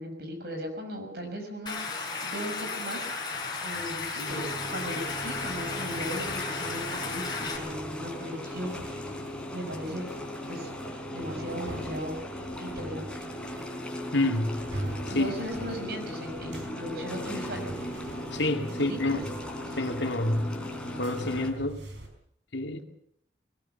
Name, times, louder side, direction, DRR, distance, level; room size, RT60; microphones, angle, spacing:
voice 1, 0.0-3.1 3.6-9.0 9.5-10.1 10.5-10.7 11.1-12.2 12.6-13.2 15.1-17.7 18.8-19.3 19.7-19.8, equal, 60° right, 5.9 m, -37 dB
Stream, 1.7-7.6, left 4 dB, 25° left, 5.1 m, -34 dB
sound 1, 3.2-22.1, right 1 dB, 75° right, 5.1 m, -45 dB
sound 2, 4.3-21.5, left 1 dB, 5° left, 3.9 m, -38 dB
voice 2, 14.1-14.6 15.1-15.3 18.3-19.2 19.7-20.6 20.9-21.8 22.5-22.8, left 2 dB, 75° left, 2.3 m, -28 dB
21.0 x 20.0 x 7.0 m
head